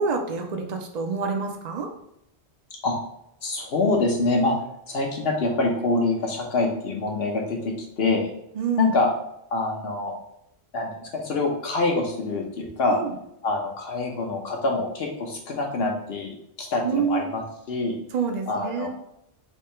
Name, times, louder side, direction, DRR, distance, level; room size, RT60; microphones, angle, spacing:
voice 1, 0.0-1.9 8.6-8.9 12.9-13.1 16.8-17.3 18.1-18.9, right 5 dB, 45° right, 3 dB, 0.6 m, -27 dB
voice 2, 3.4-4.5 4.9-8.3 8.8-9.1 9.5-10.2 10.7-13.0 13.4-17.4 17.7-18.0 18.5-18.9, left 3 dB, 65° left, 0 dB, 1.2 m, -25 dB
3.6 x 2.8 x 4.4 m, 0.77 s
omnidirectional pair, 1.1 m